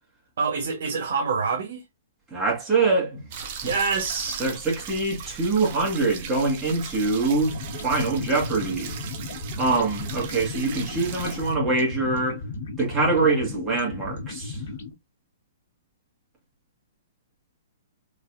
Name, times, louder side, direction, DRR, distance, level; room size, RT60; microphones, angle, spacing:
voice 1, 0.4-1.8 3.6-4.4, right 5 dB, 70° right, 1.4 m, -26 dB
voice 2, 2.3-3.3 3.6-3.7 4.4-7.6 7.8-8.9 9.6-12.4 12.8-14.6, right 3 dB, 15° right, 1.9 m, -24 dB
sound 1, 3.3-11.5, right 7 dB, 40° right, 0.9 m, -38 dB
sound 2, 7.3-14.9, left 3 dB, 65° left, 1.7 m, -36 dB
4.0 x 3.0 x 2.6 m
hypercardioid pair, 155°, 0 cm